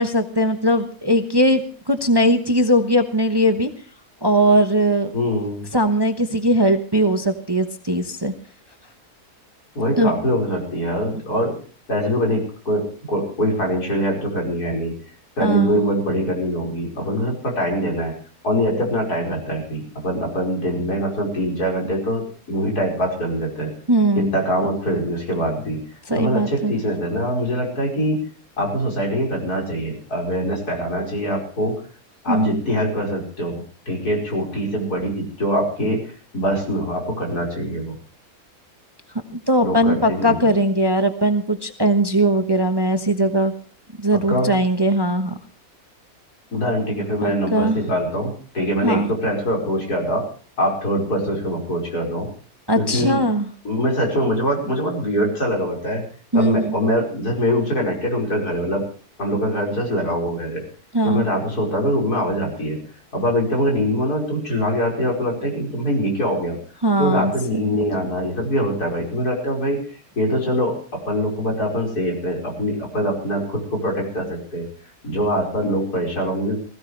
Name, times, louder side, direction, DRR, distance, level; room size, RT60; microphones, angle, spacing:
voice 1, 0.0-3.7 4.2-5.1 5.7-8.3 10.0-10.1 15.4-15.8 23.9-24.3 26.1-26.7 32.3-32.6 39.3-43.5 44.0-45.4 47.2-47.8 48.8-49.1 52.7-53.5 56.3-56.7 60.9-61.3 66.8-67.6, right 1 dB, 20° right, 6 dB, 0.9 m, -19 dB
voice 2, 5.1-5.6 9.7-11.5 11.9-14.9 15.4-18.1 18.4-23.7 24.2-25.8 26.1-28.2 28.6-31.8 32.2-36.0 36.3-37.9 39.6-40.4 44.3-44.5 46.5-50.3 50.6-52.3 52.8-53.2 53.6-56.0 56.3-58.8 59.2-60.6 61.0-62.8 63.1-66.6 67.0-69.8 70.2-74.7 75.0-76.6, equal, 85° left, -1 dB, 5.6 m, -23 dB
20.5 x 15.5 x 3.3 m, 0.40 s
omnidirectional pair, 1.6 m